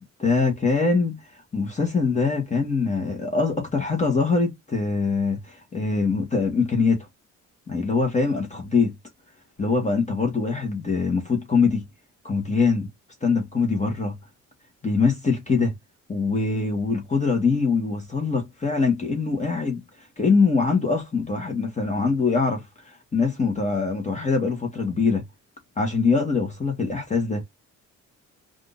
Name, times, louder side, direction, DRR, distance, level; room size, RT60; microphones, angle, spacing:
voice 1, 0.2-7.1 7.7-8.9 9.6-11.8 12.2-12.9 13.2-14.2 14.8-15.7 16.1-25.2 25.8-27.4, left 4 dB, 25° left, 1.1 m, -23 dB
3.5 x 2.5 x 2.4 m
cardioid pair, 90°, 30 cm